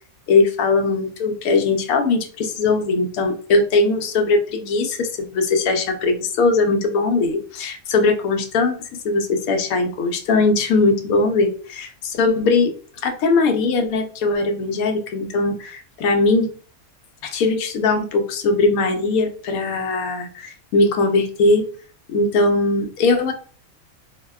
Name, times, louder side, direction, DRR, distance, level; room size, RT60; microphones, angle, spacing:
voice 1, 0.3-8.8 9.0-12.7 13.0-16.5 17.2-21.7 22.1-23.3, left 3 dB, 80° left, 5 dB, 1.0 m, -20 dB
2.7 x 2.1 x 2.2 m, 0.41 s
omnidirectional pair, 1.5 m